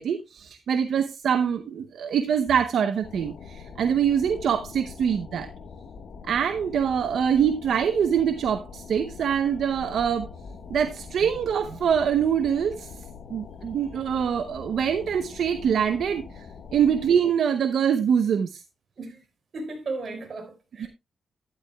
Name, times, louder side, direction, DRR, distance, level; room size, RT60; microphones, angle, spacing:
voice 1, 0.0-5.5 6.2-10.3 10.7-12.9 13.3-16.4 16.7-18.6 20.8-20.9, right 8 dB, 75° right, 0.8 m, -24 dB
sound 1, 3.0-17.1, left 5 dB, 70° left, 1.6 m, -43 dB
voice 2, 19.5-20.9, right 3 dB, 50° right, 4.8 m, -35 dB
12.0 x 11.5 x 2.3 m
cardioid pair, 115°, 0 cm